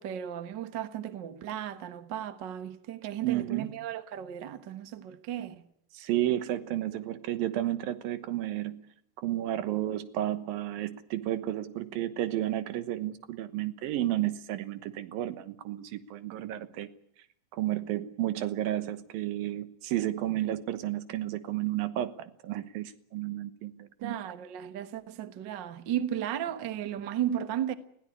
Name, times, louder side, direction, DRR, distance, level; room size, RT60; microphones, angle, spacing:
voice 1, 0.0-5.7 24.0-27.7, right 10 dB, 65° right, 1.1 m, -35 dB
voice 2, 3.2-3.7 5.9-8.9 9.2-16.9 17.5-24.2, right 13 dB, 85° right, 2.9 m, -32 dB
21.0 x 16.5 x 9.8 m
omnidirectional pair, 4.1 m